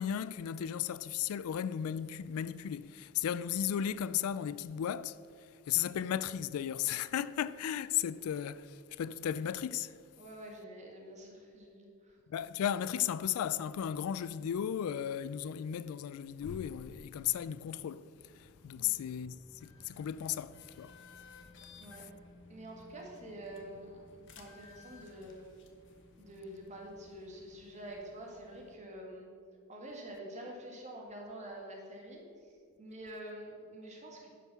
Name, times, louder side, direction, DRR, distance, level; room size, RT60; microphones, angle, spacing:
voice 1, 0.0-5.2 5.7-9.9 12.3-18.1 18.3-20.9, left 9 dB, 80° left, 0.3 m, -35 dB
voice 2, 10.2-12.2 18.7-18.9 21.8-22.0 22.5-25.5 26.2-29.3 29.7-32.5 32.8-34.3, right 1 dB, 35° right, 1.8 m, -47 dB
sound 1, 18.2-28.8, left 3 dB, 60° left, 1.1 m, -57 dB
10.5 x 5.5 x 5.9 m
head